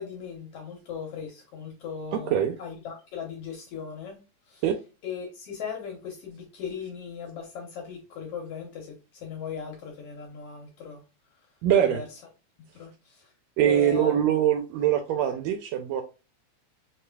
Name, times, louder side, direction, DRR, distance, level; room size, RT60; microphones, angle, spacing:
voice 1, 0.0-4.2 4.5-4.6 5.0-11.0 11.8-12.2 12.6-13.3 13.6-14.2, left 7 dB, 70° left, 1.5 m, -38 dB
voice 2, 2.1-2.5 4.6-4.8 11.6-12.0 13.6-16.0, right 10 dB, 80° right, 1.6 m, -23 dB
4.8 x 3.0 x 2.2 m
omnidirectional pair, 3.4 m